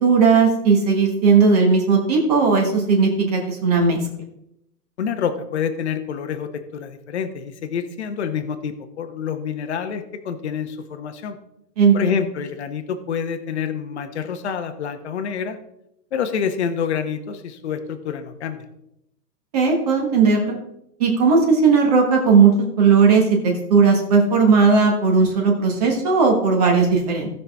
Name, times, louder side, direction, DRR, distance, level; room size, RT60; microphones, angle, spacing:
voice 1, 0.0-4.0 11.8-12.1 19.5-20.6 21.0-22.5 22.8-27.3, right 5 dB, 25° right, 1 dB, 1.2 m, -16 dB
voice 2, 5.0-11.4 11.9-15.6 16.1-18.7, left 7 dB, 40° left, 7 dB, 1.0 m, -27 dB
16.5 x 5.9 x 3.5 m, 0.81 s
hypercardioid pair, 170°, 50 cm